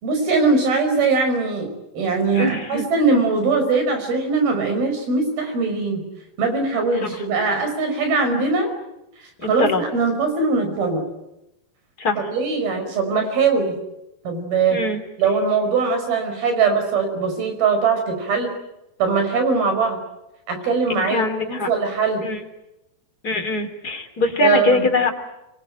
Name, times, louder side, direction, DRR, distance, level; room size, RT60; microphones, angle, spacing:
voice 1, 0.0-1.7 1.9-6.0 6.4-8.7 9.4-11.1 12.2-13.8 14.3-14.8 15.2-18.5 19.0-20.0 20.5-22.2 24.4-24.9, right 4 dB, 75° right, 6 dB, 7.2 m, -21 dB
voice 2, 2.3-2.8 7.0-7.2 9.4-9.8 12.0-12.3 14.7-15.0 20.9-21.7 22.2-22.4 23.2-25.1, left 3 dB, 25° left, 5 dB, 3.2 m, -22 dB
26.5 x 23.5 x 8.9 m, 0.91 s
omnidirectional pair, 4.4 m